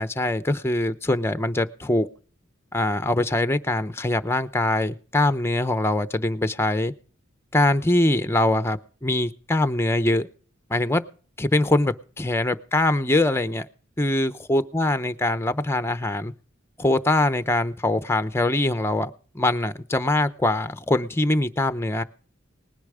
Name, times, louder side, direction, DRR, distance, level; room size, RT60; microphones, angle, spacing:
voice 1, 0.0-2.1 2.7-6.9 7.5-10.3 10.7-11.0 11.4-13.7 14.0-16.3 16.8-22.0, left 1 dB, 10° left, 11 dB, 0.8 m, -23 dB
19.5 x 10.0 x 5.0 m, 0.42 s
head